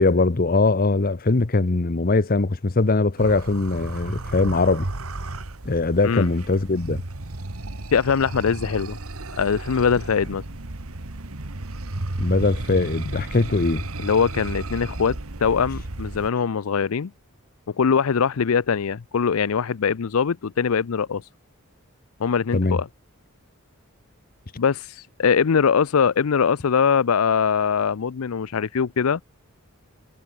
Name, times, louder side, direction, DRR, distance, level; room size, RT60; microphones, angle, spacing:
voice 1, 0.0-4.9 5.6-7.0 12.2-13.8 22.5-22.8, left 3 dB, 40° left, 0.8 m, -21 dB
sound 1, 3.2-16.3, right 2 dB, 80° right, 1.8 m, -33 dB
voice 2, 7.9-9.0 9.4-10.4 14.0-17.1 17.8-21.2 22.2-22.9 24.6-29.2, left 6 dB, 75° left, 0.5 m, -22 dB
head